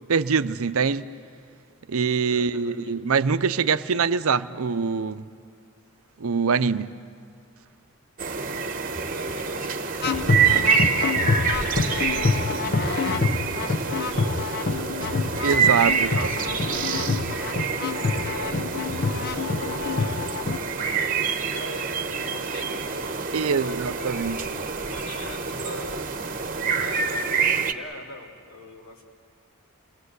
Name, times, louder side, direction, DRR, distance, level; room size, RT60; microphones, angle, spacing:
voice 1, 0.1-1.1 1.9-5.2 6.2-6.9 15.4-16.3 23.3-24.4, right 5 dB, 70° right, 12 dB, 0.6 m, -24 dB
voice 2, 2.3-2.9 9.1-13.3 13.8-17.7 18.3-20.9 21.2-24.2 24.9-26.0 26.6-29.0, left 2 dB, 70° left, 0 dB, 3.0 m, -43 dB
sound 1, 8.2-27.7, right 6 dB, 40° right, 1.1 m, -27 dB
sound 2, 8.8-16.8, right 1 dB, 25° left, 4.0 m, -43 dB
sound 3, 10.0-20.6, left 4 dB, 50° left, 0.8 m, -26 dB
28.5 x 20.0 x 8.1 m, 2.2 s
head